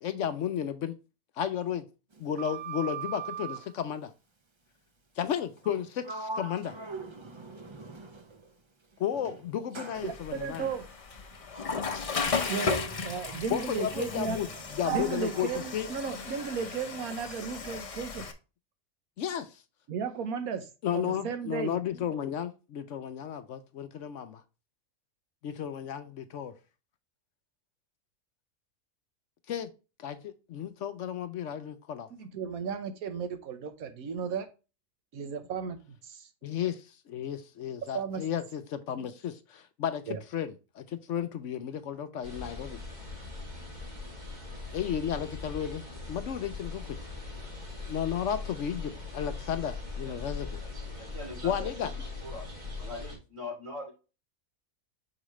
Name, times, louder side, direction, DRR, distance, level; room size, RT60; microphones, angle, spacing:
voice 1, 0.0-0.9 1.4-1.9 2.2-4.1 5.2-6.8 9.0-10.7 13.5-14.5 14.7-15.5 15.7-15.9 19.2-19.5 20.8-24.4 25.4-26.5 29.5-29.7 30.0-32.1 36.4-40.0 40.3-42.8 44.7-46.8 47.9-50.6 51.4-51.9, left 9 dB, 65° left, 0.9 m, -33 dB
Sliding door, 2.1-3.7 5.6-5.8 6.0-8.5 9.1-16.6, right 6 dB, 45° right, 0.3 m, -41 dB
Water / Toilet flush, 9.9-18.3, left 4 dB, 35° left, 0.6 m, -35 dB
voice 2, 10.0-10.9 12.5-14.4 14.9-18.2 19.9-20.6 20.9-21.7 32.1-34.5 35.1-36.3 37.9-38.2 40.1-40.2, right 6 dB, 85° right, 1.3 m, -35 dB
sound 1, 42.2-53.2, left 3 dB, 30° right, 2.2 m, -40 dB
voice 3, 51.0-52.4 52.8-53.9, left 2 dB, 65° right, 3.2 m, -42 dB
6.3 x 5.0 x 3.0 m
omnidirectional pair, 1.5 m